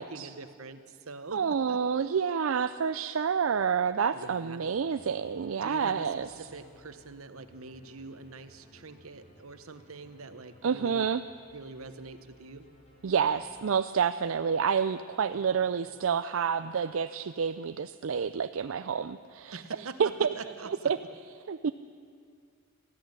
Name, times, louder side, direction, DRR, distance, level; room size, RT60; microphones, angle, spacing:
voice 1, 0.0-1.4 1.7-1.8 4.1-4.6 5.6-11.1 11.5-12.7 15.3-15.4 15.9-16.0 19.5-20.9, right 3 dB, 85° right, 10 dB, 1.1 m, -44 dB
voice 2, 1.3-6.3 10.6-11.2 13.0-19.6 20.0-20.3 20.7-21.0 21.5-21.7, right 6 dB, 65° right, 11 dB, 0.4 m, -28 dB
sound 1, 4.7-14.0, left 1 dB, 30° left, 3.4 m, -59 dB
19.5 x 14.0 x 10.0 m, 2.2 s
head